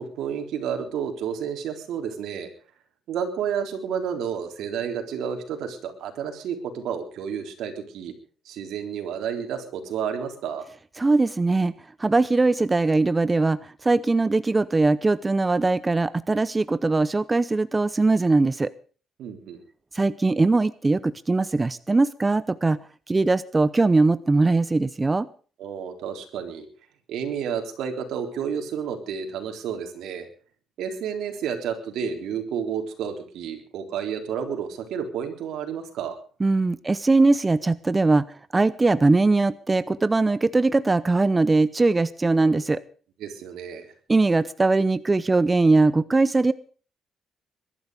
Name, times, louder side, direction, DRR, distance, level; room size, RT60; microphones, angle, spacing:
voice 1, 0.0-2.5 3.1-8.1 8.5-10.7 19.2-19.6 25.6-26.7 27.1-30.3 30.8-36.2 43.2-43.9, right 7 dB, 80° right, 5 dB, 3.8 m, -31 dB
voice 2, 11.0-11.7 12.0-18.7 19.9-22.8 23.1-25.3 36.4-38.2 38.5-42.8 44.1-46.5, right 3 dB, 20° right, 16 dB, 0.7 m, -21 dB
21.5 x 12.5 x 5.0 m, 0.40 s
cardioid pair, 125°, 0 cm